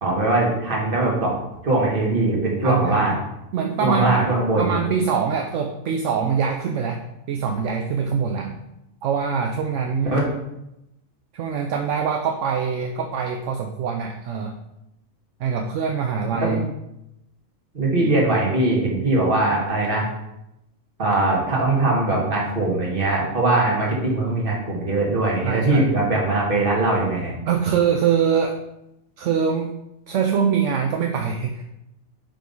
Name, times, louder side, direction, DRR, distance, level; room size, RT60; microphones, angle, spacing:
voice 1, 0.0-1.3 1.6-3.2 3.8-4.8 10.0-10.2 16.4-16.6 17.7-20.0 21.0-27.3, right 2 dB, 40° right, -3 dB, 1.6 m, -21 dB
voice 2, 2.6-3.1 3.5-4.2 4.6-7.0 7.3-8.6 9.0-10.3 11.3-14.5 15.4-16.6 25.4-25.9 27.5-28.6 29.2-29.7 30.1-31.7, right 6 dB, 70° right, 3 dB, 0.8 m, -23 dB
4.7 x 3.9 x 5.2 m, 0.87 s
omnidirectional pair, 1.5 m